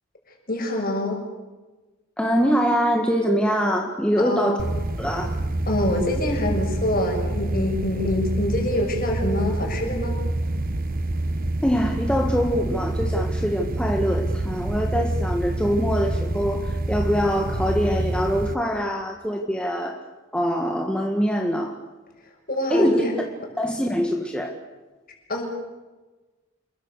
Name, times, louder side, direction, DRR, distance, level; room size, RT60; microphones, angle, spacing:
voice 1, 0.5-1.2 4.2-4.6 5.7-10.2 22.5-23.1 25.3-25.4, left 1 dB, 45° left, 2 dB, 6.4 m, -25 dB
voice 2, 2.2-4.6 5.0-5.4 11.6-20.0 20.3-21.8 22.7-23.0 23.6-24.5, equal, 5° left, 2 dB, 1.7 m, -23 dB
sound 1, 4.6-18.5, right 1 dB, 45° right, 1.1 m, -27 dB
27.5 x 22.5 x 6.7 m, 1.2 s
head